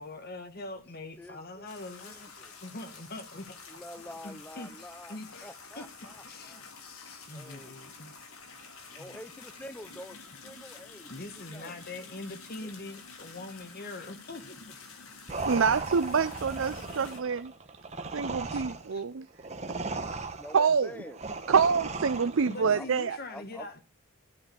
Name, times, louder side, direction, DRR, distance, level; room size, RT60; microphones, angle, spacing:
voice 1, 0.0-3.6 4.2-5.9 6.2-8.2 9.0-9.1 11.1-14.8 18.5-19.0 22.4-23.8, left 2 dB, 45° left, 1.5 m, -43 dB
voice 2, 1.2-1.7 2.0-2.6 3.7-6.6 7.3-7.8 8.9-11.8 12.6-12.7 16.4-16.8 20.3-21.2 22.7-22.9 23.3-23.7, left 1 dB, 5° left, 0.7 m, -47 dB
sound 1, 1.7-17.2, left 4 dB, 80° left, 2.5 m, -49 dB
sound 2, 15.3-22.7, right 3 dB, 30° right, 1.0 m, -37 dB
voice 3, 15.4-17.5 18.1-19.3 19.7-19.8 20.1-20.2 20.5-20.9 21.5-23.2, right 6 dB, 65° right, 0.5 m, -26 dB
12.5 x 4.8 x 8.5 m
head